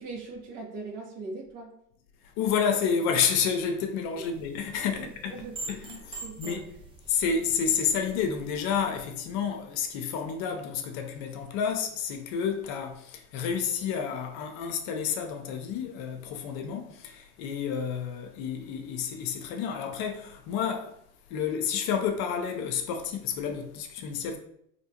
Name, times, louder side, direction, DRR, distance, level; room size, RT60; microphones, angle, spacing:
voice 1, 0.0-1.7 4.2-4.3 5.0-5.8 6.2-6.6, right 3 dB, 60° right, 1.4 m, -40 dB
voice 2, 2.4-5.4 5.7-6.6 7.1-21.0 21.3-24.4, left 7 dB, 50° left, 0.6 m, -30 dB
sound 1, 4.2-9.1, right 3 dB, 15° right, 0.3 m, -45 dB
3.4 x 2.8 x 2.8 m
hypercardioid pair, 100°, 47 cm